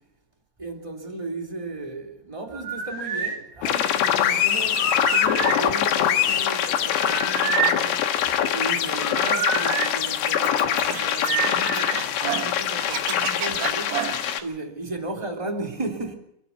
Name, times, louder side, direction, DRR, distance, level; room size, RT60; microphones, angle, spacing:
voice 1, 0.6-8.1 8.5-16.1, right 2 dB, 10° right, 2.3 m, -35 dB
sound 1, 2.5-3.4 4.7-5.6 6.9-7.8 9.0-9.9 11.2-12.1, right 6 dB, 55° right, 5.1 m, -28 dB
sound 2, 3.6-14.4, left 10 dB, 80° left, 3.6 m, -23 dB
Scratching (performance technique), 10.4-12.5 12.8-14.4, right 10 dB, 85° right, 3.7 m, -31 dB
27.5 x 12.0 x 8.2 m
omnidirectional pair, 5.0 m